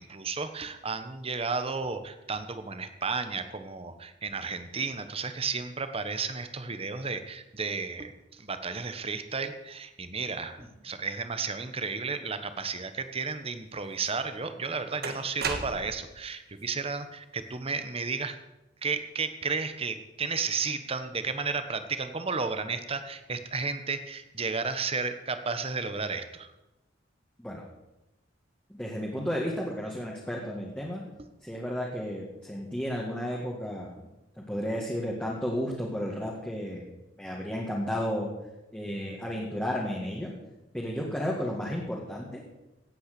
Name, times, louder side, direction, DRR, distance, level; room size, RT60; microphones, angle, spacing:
voice 1, 0.0-18.3 18.8-26.5, right 4 dB, 30° right, 9 dB, 1.2 m, -33 dB
sound 1, 14.1-14.2 15.0-16.1, right 4 dB, 55° right, 1.6 m, -34 dB
voice 2, 28.7-31.0 31.4-34.1 34.4-36.9 37.2-38.3 38.7-40.3 40.7-42.4, equal, 5° left, -3 dB, 2.1 m, -33 dB
16.5 x 9.0 x 6.9 m, 0.99 s
head